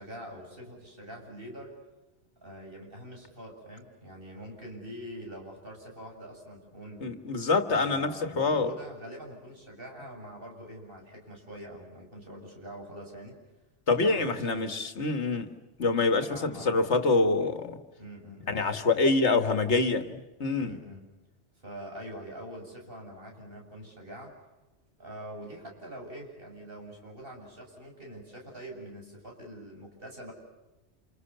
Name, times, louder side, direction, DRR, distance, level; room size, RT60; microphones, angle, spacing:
voice 1, 0.0-1.8 2.4-7.0 7.7-13.4 14.0-14.8 16.0-16.9 18.0-18.8 20.6-21.0 21.5-24.3 25.0-30.3, equal, 50° right, 1 dB, 7.4 m, -44 dB
voice 2, 7.0-8.7 13.9-15.5 15.8-17.8 18.5-20.7, left 3 dB, 70° left, 8 dB, 2.1 m, -26 dB
28.5 x 28.0 x 6.9 m, 1.1 s
omnidirectional pair, 1.2 m